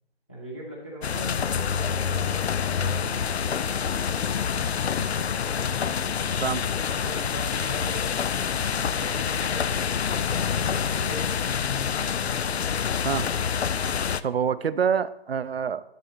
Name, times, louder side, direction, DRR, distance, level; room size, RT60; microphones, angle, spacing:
voice 1, 0.3-4.5 4.9-5.2 6.0-6.5 7.0-8.1 8.6-9.9 10.2-11.5 11.8-12.1, right 1 dB, 10° left, -8 dB, 0.6 m, -41 dB
sound 1, 1.0-14.2, left 7 dB, 75° left, 0.5 m, -27 dB
voice 2, 14.2-15.8, right 7 dB, 65° right, 15 dB, 0.5 m, -26 dB
10.5 x 4.1 x 3.8 m, 0.83 s
figure-of-eight pair, 155°, 32 cm